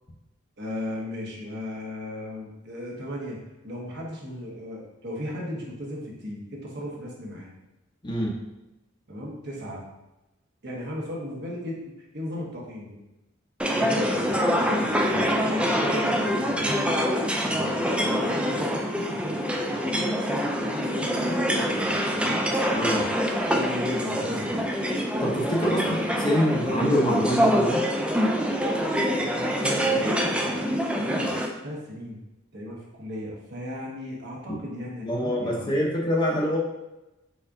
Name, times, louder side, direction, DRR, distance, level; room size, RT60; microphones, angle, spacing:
voice 1, 0.6-3.4 3.6-7.5 9.1-9.8 10.6-11.8 12.1-13.0 13.6-17.1 17.5-22.5 23.5-24.7 25.6-26.0 29.2-31.4 31.6-32.2 32.5-35.7, left 1 dB, 55° right, -3 dB, 1.1 m, -36 dB
voice 2, 8.0-8.3 22.7-23.1 25.2-27.8 34.5-34.6 35.0-36.6, equal, 20° left, -2 dB, 0.7 m, -25 dB
sound 1, 13.6-31.5, equal, 5° right, 0.3 m, -25 dB
4.6 x 4.2 x 2.6 m, 0.99 s
head